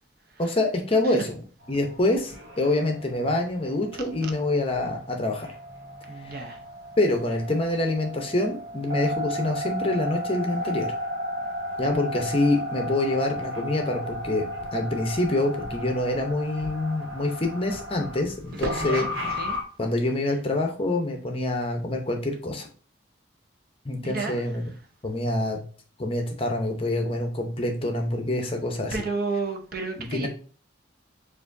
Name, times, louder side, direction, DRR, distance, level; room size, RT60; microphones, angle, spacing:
voice 1, 0.4-1.4 1.7-5.5 6.3-6.4 7.0-10.9 11.8-19.4 19.8-22.7 23.8-24.6 25.0-25.6 26.0-28.9 30.1-30.3, left 2 dB, 30° left, 0.7 m, -26 dB
sound 1, 1.6-19.6, equal, 75° right, 1.3 m, -34 dB
voice 2, 6.1-6.6 18.5-19.1 19.4-19.6 24.0-24.5 28.9-30.3, right 3 dB, 50° right, 0.7 m, -31 dB
6.8 x 2.6 x 2.6 m
head